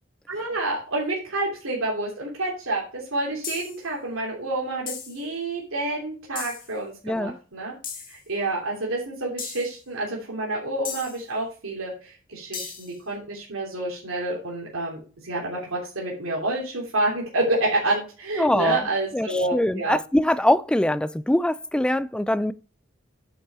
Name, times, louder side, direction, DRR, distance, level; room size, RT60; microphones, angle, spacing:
voice 1, 0.3-7.7 8.1-20.0, right 2 dB, 75° right, 3.2 m, -28 dB
sound 1, 3.4-3.8 4.9-5.2 6.4-6.7 7.8-8.2 9.4-9.7 10.8-11.2 12.5-12.9, left 7 dB, 45° left, 2.0 m, -35 dB
voice 2, 7.0-7.4 18.4-18.9 19.1-22.5, left 1 dB, 5° left, 0.3 m, -23 dB
9.2 x 6.4 x 4.2 m
head